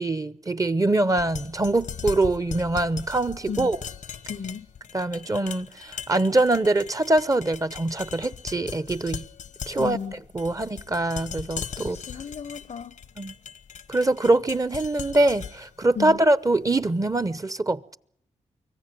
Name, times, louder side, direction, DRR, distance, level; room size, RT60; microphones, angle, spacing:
voice 1, 0.0-3.8 4.9-9.2 9.7-10.0 10.3-12.0 13.2-13.3 13.9-18.0, right 2 dB, 25° right, 0.8 m, -23 dB
sound 1, 1.1-17.2, left 7 dB, 85° left, 1.1 m, -39 dB
voice 2, 4.3-4.7 9.8-10.1 11.9-13.0 16.0-16.2, left 6 dB, 60° left, 0.7 m, -34 dB
24.5 x 15.5 x 7.6 m
cardioid pair, 55°, 13 cm